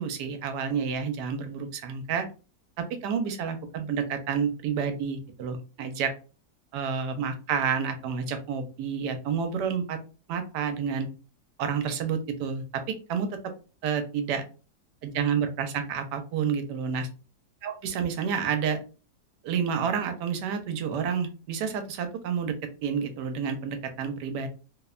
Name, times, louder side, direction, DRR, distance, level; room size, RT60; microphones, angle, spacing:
voice 1, 0.0-2.3 2.8-6.1 6.7-10.0 10.3-11.1 11.6-12.8 13.1-13.3 13.8-14.4 15.0-17.1 17.6-18.8 19.4-22.5 22.8-24.5, right 6 dB, 80° right, 8 dB, 1.2 m, -29 dB
3.0 x 2.1 x 2.3 m, 0.35 s
omnidirectional pair, 1.8 m